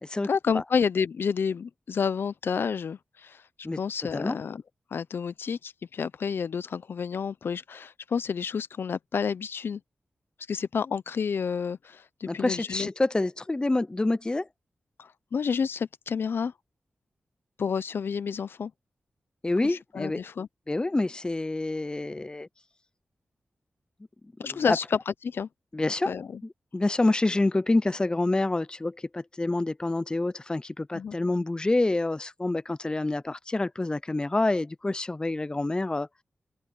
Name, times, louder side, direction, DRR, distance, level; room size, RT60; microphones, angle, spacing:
voice 1, 0.3-3.4 3.7-4.6 4.9-9.8 10.5-12.9 15.0-16.5 17.6-18.7 19.6-20.5 24.4-25.5 26.1-26.4 30.9-31.2, left 6 dB, 75° left, 0.6 m, -30 dB
voice 2, 12.3-14.5 19.4-20.2 20.7-22.5 24.4-24.8 25.7-26.1 26.4-36.1, left 2 dB, 20° left, 0.5 m, -27 dB
open air
cardioid pair, 60°, 4 cm